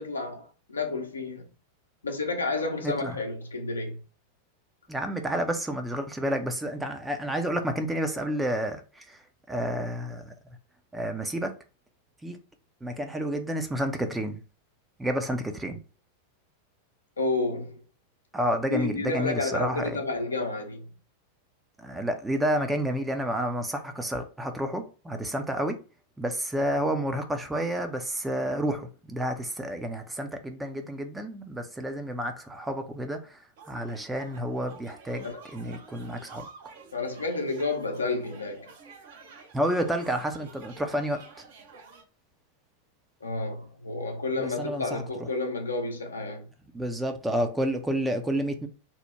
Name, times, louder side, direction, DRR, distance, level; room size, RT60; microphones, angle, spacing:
voice 1, 0.0-1.5 2.0-4.0 17.2-17.8 18.7-20.9 35.2-35.4 36.9-38.7 43.2-46.5, left 3 dB, 75° left, 0.6 m, -31 dB
voice 2, 2.8-3.2 4.9-9.2 9.5-10.3 10.9-11.5 12.2-12.4 12.8-14.4 15.0-15.8 18.3-20.0 21.8-25.7 26.2-33.4 33.7-36.5 39.5-41.2 44.4-45.0 46.7-48.7, equal, 10° right, 0.5 m, -30 dB
sound 1, 33.6-42.0, right 4 dB, 55° right, 0.7 m, -50 dB
2.9 x 2.1 x 3.4 m
figure-of-eight pair, 90°, 0 cm